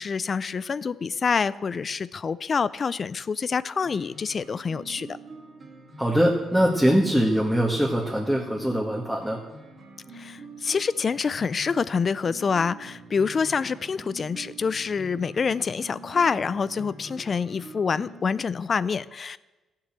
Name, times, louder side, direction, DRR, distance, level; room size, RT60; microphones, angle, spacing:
voice 1, 0.0-5.2 10.1-19.4, left 5 dB, 40° left, 19 dB, 0.4 m, -26 dB
sound 1, 3.8-18.2, right 2 dB, 40° right, 2.9 m, -45 dB
voice 2, 6.0-9.4, equal, ahead, -3 dB, 1.8 m, -22 dB
14.5 x 7.6 x 7.4 m, 1.1 s
cardioid pair, 90°, 0 cm